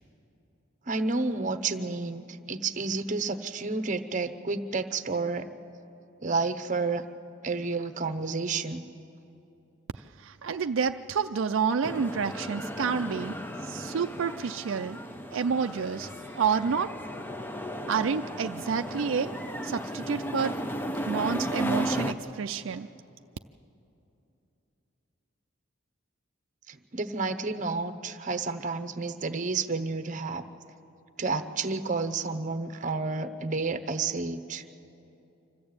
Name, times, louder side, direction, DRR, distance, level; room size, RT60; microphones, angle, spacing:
voice 1, 0.9-5.5 6.2-7.0 7.4-8.9 26.7-30.4 31.2-34.7, right 3 dB, 40° right, 9 dB, 0.9 m, -30 dB
voice 2, 9.9-15.0 15.3-16.1 16.4-17.0 17.9-19.4 19.6-20.6 21.1-22.9, right 6 dB, 70° right, 7 dB, 0.4 m, -29 dB
sound 1, 11.8-22.1, equal, 10° left, 0.6 m, -35 dB
25.5 x 14.5 x 8.7 m, 2.8 s
head